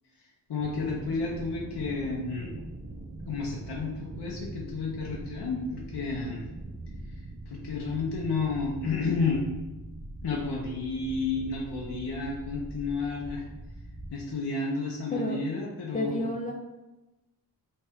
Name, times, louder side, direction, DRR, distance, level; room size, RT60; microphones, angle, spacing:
voice 1, 0.5-2.5 3.3-6.4 7.5-9.4 10.2-13.4 14.1-16.3, left 4 dB, 90° left, -3 dB, 0.9 m, -31 dB
sound 1, 0.6-14.1, right 2 dB, 50° right, 1.0 m, -42 dB
voice 2, 15.9-16.5, left 1 dB, 20° left, -1 dB, 0.5 m, -30 dB
3.6 x 3.3 x 4.4 m, 1.0 s
wide cardioid pair, 80°, 39 cm